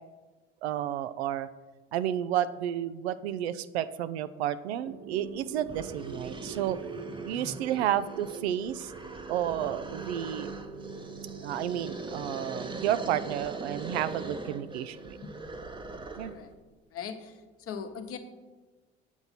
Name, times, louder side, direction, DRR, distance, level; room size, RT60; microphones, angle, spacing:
voice 1, 0.6-1.5 1.9-6.8 7.2-8.9 9.3-10.5 11.4-15.2 16.2-16.3, right 11 dB, 75° right, 14 dB, 0.5 m, -31 dB
sound 1, 4.8-16.8, right 5 dB, 45° right, 0.9 m, -44 dB
sound 2, 5.3-5.4 5.7-16.5, right 2 dB, 15° right, 0.8 m, -41 dB
voice 2, 16.9-17.3 17.7-18.2, left 7 dB, 45° left, 7 dB, 1.0 m, -39 dB
7.8 x 7.1 x 4.1 m, 1.2 s
figure-of-eight pair, 60°, 32 cm